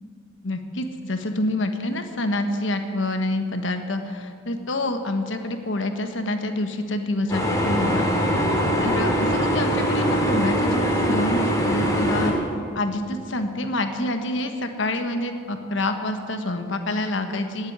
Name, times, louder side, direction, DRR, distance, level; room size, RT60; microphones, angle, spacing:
voice 1, 0.4-8.5 8.8-12.4 12.7-17.7, left 1 dB, 70° left, 7 dB, 1.4 m, -27 dB
sound 1, 7.3-12.3, equal, 20° left, 3.0 m, -22 dB
18.5 x 8.1 x 9.7 m, 2.2 s
head